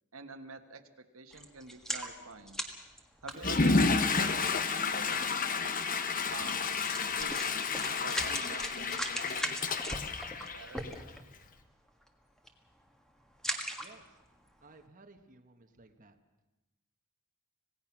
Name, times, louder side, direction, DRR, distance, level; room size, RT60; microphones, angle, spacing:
voice 1, 0.1-2.6 3.2-5.3 6.3-6.7 7.2-7.5 8.0-9.8 10.5-10.9, right 3 dB, 75° right, 6 dB, 1.5 m, -47 dB
sound 1, 1.3-4.0 4.8-4.9 5.2-5.4 6.4-6.5 6.8-11.4 11.9-12.1 12.4-12.7 13.3-14.2 14.7-14.8, equal, 5° left, 1.6 m, -39 dB
Water / Toilet flush, 3.3-11.1, left 4 dB, 40° left, 1.1 m, -30 dB
voice 2, 14.6-16.1, right 3 dB, 40° right, 5 dB, 1.2 m, -57 dB
26.5 x 17.5 x 6.0 m, 1.1 s
head